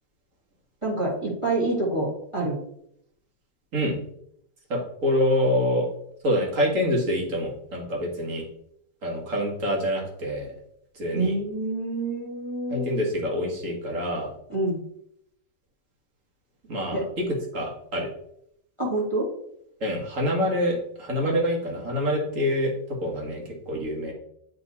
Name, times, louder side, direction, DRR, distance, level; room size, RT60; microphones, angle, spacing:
voice 1, 0.8-2.6 11.1-12.9 14.5-14.8 16.9-17.0 18.8-19.3, right 2 dB, 20° right, -2 dB, 1.5 m, -27 dB
voice 2, 4.7-5.9 6.2-8.4 9.0-10.5 11.0-11.3 12.7-14.3 16.6-18.1 19.8-24.1, equal, 50° right, -1 dB, 1.9 m, -26 dB
9.0 x 3.8 x 4.1 m, 0.73 s
omnidirectional pair, 1.9 m